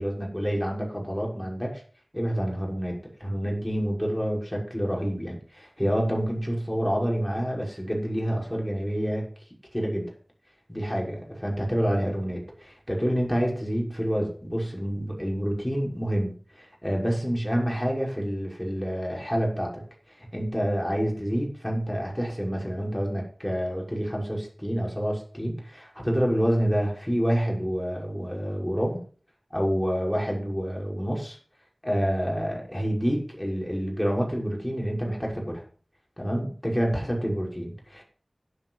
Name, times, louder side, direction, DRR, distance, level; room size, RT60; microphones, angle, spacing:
voice 1, 0.0-1.8 2.1-9.3 9.7-10.1 10.7-19.8 20.2-29.0 29.5-31.4 31.8-35.6 36.2-38.0, equal, 10° left, -2 dB, 6.4 m, -28 dB
12.0 x 11.5 x 5.9 m, 0.42 s
wide cardioid pair, 50°, 0 cm